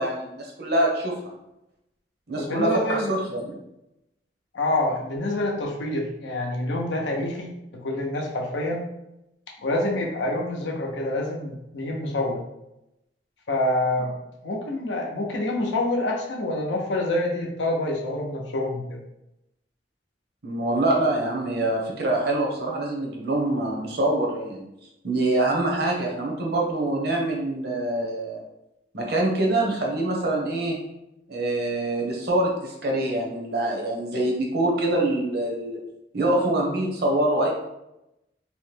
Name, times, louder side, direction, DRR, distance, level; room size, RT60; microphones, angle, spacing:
voice 1, 0.0-1.3 2.3-3.6 20.4-24.7 25.0-28.4 28.9-30.8 31.3-35.8 36.1-37.5, right 1 dB, 60° right, -1 dB, 0.7 m, -25 dB
voice 2, 2.4-3.1 4.5-8.9 9.6-12.4 13.5-14.1 14.4-19.0, left 1 dB, 85° left, 0 dB, 0.6 m, -27 dB
2.8 x 2.1 x 3.3 m, 0.87 s
head